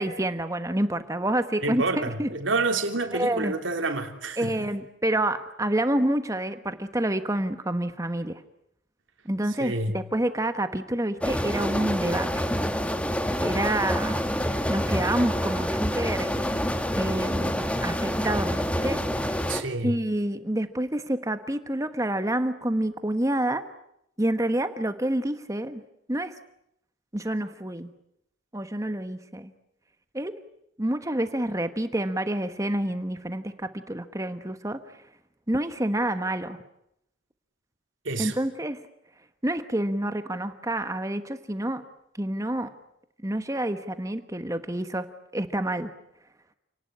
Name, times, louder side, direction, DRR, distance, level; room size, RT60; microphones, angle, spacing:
voice 1, 0.0-2.3 3.1-3.5 4.4-8.4 9.2-12.5 13.4-16.6 16.9-19.5 19.8-23.6 24.2-25.8 26.1-26.3 27.1-27.9 28.5-29.5 30.1-30.4 30.8-35.0 35.5-36.6 38.2-38.8 39.4-41.8 42.2-42.7 43.2-45.1 45.3-45.9, right 1 dB, 15° right, 1.2 m, -28 dB
voice 2, 1.6-4.7 9.6-10.0 19.5-20.0 38.1-38.4, right 3 dB, 85° right, 3.3 m, -28 dB
sound 1, 11.2-19.6, equal, 5° left, 1.8 m, -27 dB
29.5 x 19.0 x 9.9 m
head